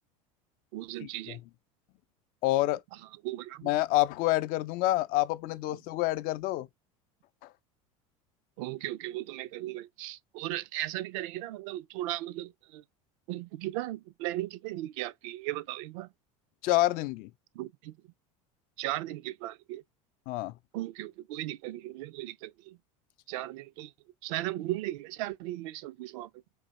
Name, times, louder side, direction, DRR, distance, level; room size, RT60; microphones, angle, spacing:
voice 1, 0.7-1.4 2.9-3.7 8.6-12.8 13.3-16.1 17.5-18.0 18.8-19.8 20.7-22.8 23.3-23.9 24.2-26.3, right 16 dB, 70° right, 0.5 m, -37 dB
voice 2, 2.4-2.8 3.6-6.7 16.6-17.3 20.3-20.5, left 17 dB, 60° left, 0.4 m, -27 dB
3.9 x 2.8 x 4.1 m
supercardioid pair, 95°, 17 cm